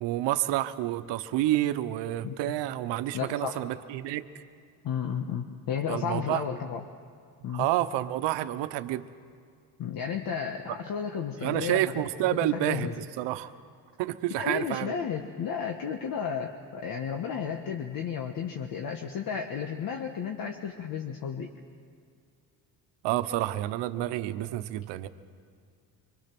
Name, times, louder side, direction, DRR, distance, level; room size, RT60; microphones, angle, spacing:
voice 1, 0.0-4.4 5.9-6.4 7.5-9.1 11.4-12.9 13.2-13.5 14.0-15.0 23.0-25.1, right 14 dB, 90° right, 11 dB, 1.1 m, -29 dB
voice 2, 3.1-3.6 4.8-6.8 7.4-7.7 9.8-12.9 14.3-21.5, left 7 dB, 55° left, 4 dB, 1.4 m, -33 dB
25.5 x 24.5 x 6.1 m, 2.2 s
cardioid pair, 135°, 42 cm